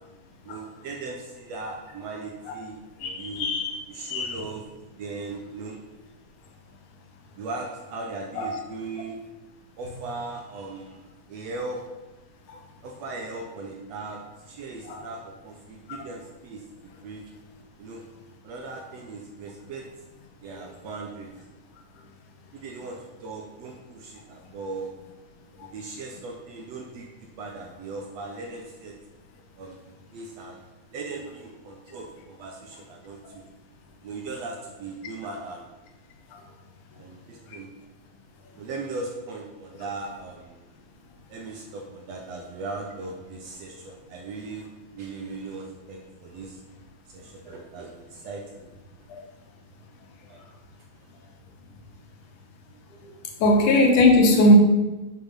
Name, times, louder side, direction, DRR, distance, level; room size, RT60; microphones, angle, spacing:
voice 1, 0.4-3.5 3.9-4.6 5.0-5.8 7.4-9.2 9.8-11.8 12.8-17.2 17.8-18.0 18.4-19.9 20.4-21.3 22.5-24.9 25.6-28.9 29.6-29.8 30.1-30.6 30.9-33.5 34.0-35.6 37.0-37.7 38.6-40.6 41.3-44.7 44.9-46.6 47.1-48.7 50.3-50.4, right 3 dB, 70° right, 1 dB, 1.7 m, -38 dB
voice 2, 3.0-3.8 4.1-4.4 8.4-8.5 12.5-12.6 14.9-15.0 49.1-49.2 53.4-54.6, left 1 dB, 70° left, 3 dB, 2.6 m, -19 dB
7.5 x 7.1 x 5.6 m, 1.1 s
omnidirectional pair, 3.8 m